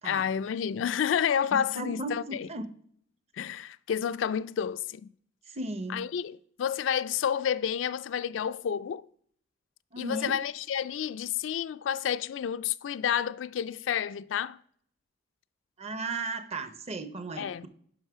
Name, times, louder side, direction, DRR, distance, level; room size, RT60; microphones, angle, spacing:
voice 1, 0.0-2.5 3.4-5.1 5.9-9.1 10.0-14.6 17.4-17.7, left 8 dB, 85° left, 0.3 m, -30 dB
voice 2, 1.5-2.7 5.5-6.1 9.9-10.4 15.8-17.7, right 2 dB, 35° right, 0.7 m, -36 dB
11.0 x 5.6 x 4.7 m
head